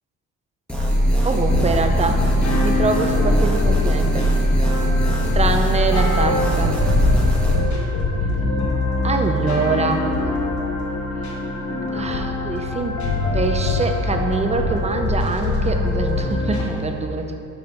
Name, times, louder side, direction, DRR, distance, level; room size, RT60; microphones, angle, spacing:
sound 1, 0.7-7.6, equal, 5° left, 1.5 m, -20 dB
voice 1, 1.2-2.2 2.6-4.3 5.3-6.7 9.0-10.1 11.9-13.1 13.3-17.3, right 3 dB, 20° right, 5 dB, 0.6 m, -24 dB
sound 2, 1.5-16.6, left 2 dB, 70° left, 1.3 m, -24 dB
6.1 x 5.2 x 5.1 m, 2.8 s
cardioid pair, 90°, 30 cm